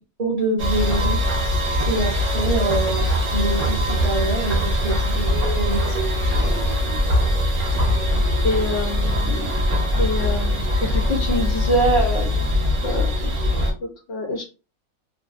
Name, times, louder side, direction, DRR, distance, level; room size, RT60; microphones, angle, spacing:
voice 1, 0.2-1.2 1.9-6.0, right 2 dB, 65° right, -4 dB, 0.3 m, -26 dB
sound 1, 0.6-13.7, left 1 dB, 35° right, 0.7 m, -21 dB
voice 2, 8.4-9.6 10.0-13.6 14.1-14.4, equal, 65° left, 1 dB, 0.7 m, -25 dB
2.5 x 2.2 x 2.3 m, 0.30 s
omnidirectional pair, 1.6 m